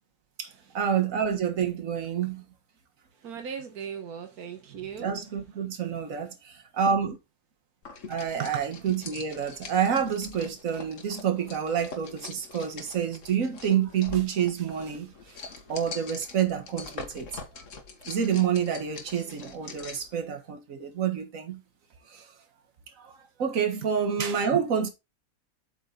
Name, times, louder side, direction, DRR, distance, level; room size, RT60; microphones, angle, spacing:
voice 1, 0.4-2.4 5.0-6.4 6.8-7.2 8.1-15.1 15.7-17.3 17.5-17.6 18.1-21.6 22.1-22.3 23.0-24.9, right 8 dB, 65° right, 1.8 m, -28 dB
voice 2, 3.2-5.2 8.4-8.6 23.8-23.9 24.5-24.6, right 8 dB, 85° right, 1.6 m, -37 dB
sound 1, 7.8-20.1, left 4 dB, 60° left, 1.6 m, -44 dB
8.1 x 4.5 x 3.9 m
omnidirectional pair, 1.5 m